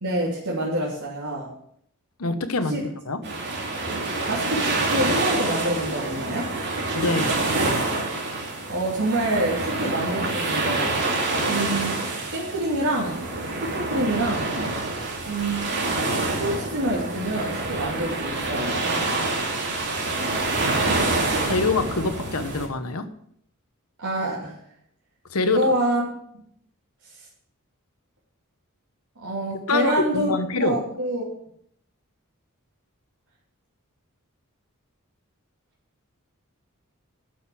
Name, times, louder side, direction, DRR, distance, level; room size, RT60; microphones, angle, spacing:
voice 1, 0.0-1.5 2.7-2.8 4.3-6.5 8.7-10.9 11.5-11.9 12.3-13.2 13.6-14.5 15.2-15.6 16.3-18.9 24.0-24.6 25.5-26.0 26.3-26.4 27.1-27.2 29.2-31.3, right 1 dB, 70° right, -6 dB, 2.9 m, -26 dB
voice 2, 2.2-3.2 6.9-7.4 21.4-23.1 25.3-25.6 29.7-30.8, left 3 dB, 85° left, 9 dB, 1.2 m, -25 dB
sound 1, 3.2-22.7, right 2 dB, 55° right, 2.7 m, -26 dB
11.5 x 6.5 x 7.6 m, 0.68 s
head